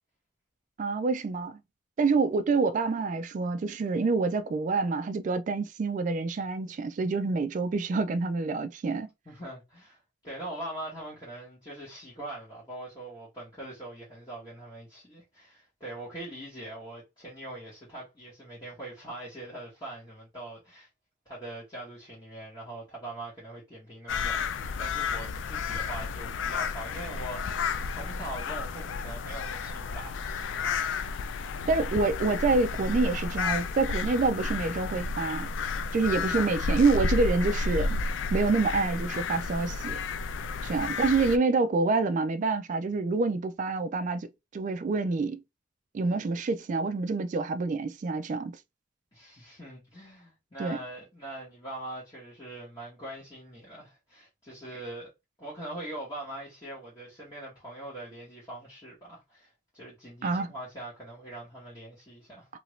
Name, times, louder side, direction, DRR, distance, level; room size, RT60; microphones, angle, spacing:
voice 1, 0.8-1.6 2.0-9.1 31.7-35.5 35.9-38.0 38.3-40.0 40.6-44.3 44.5-45.4 45.9-48.5 50.6-50.8 60.2-60.5, right 3 dB, 40° right, 0.3 m, -27 dB
voice 2, 9.2-20.9 21.2-30.8 36.3-36.8 40.5-41.0 49.1-55.1 55.4-62.5, right 1 dB, 20° left, 1.4 m, -42 dB
sound 1, 24.1-41.4, left 4 dB, 70° left, 0.3 m, -32 dB
2.8 x 2.6 x 3.1 m
head